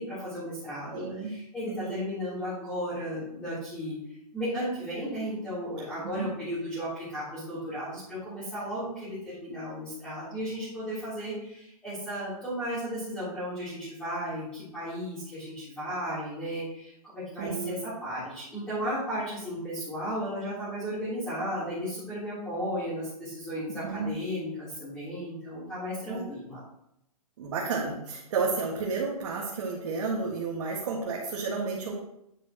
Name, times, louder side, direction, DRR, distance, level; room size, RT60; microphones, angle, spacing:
voice 1, 0.0-4.0 4.3-26.6, equal, 5° left, -14 dB, 3.6 m, -34 dB
voice 2, 0.9-1.3 1.6-2.0 6.0-6.3 17.4-17.8 23.8-24.1 26.1-26.2 27.4-31.9, right 4 dB, 50° right, -3 dB, 1.9 m, -31 dB
9.2 x 8.3 x 3.0 m, 0.79 s
hypercardioid pair, 165°, 19 cm